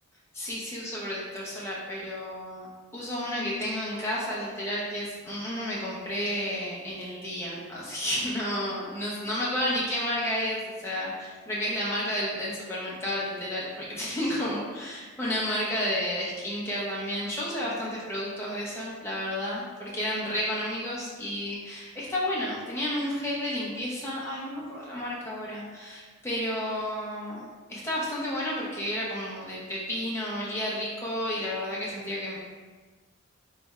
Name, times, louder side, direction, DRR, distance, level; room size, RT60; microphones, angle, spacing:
voice 1, 0.3-32.4, left 1 dB, 10° left, -6 dB, 0.8 m, -31 dB
3.4 x 3.2 x 3.6 m, 1.4 s
head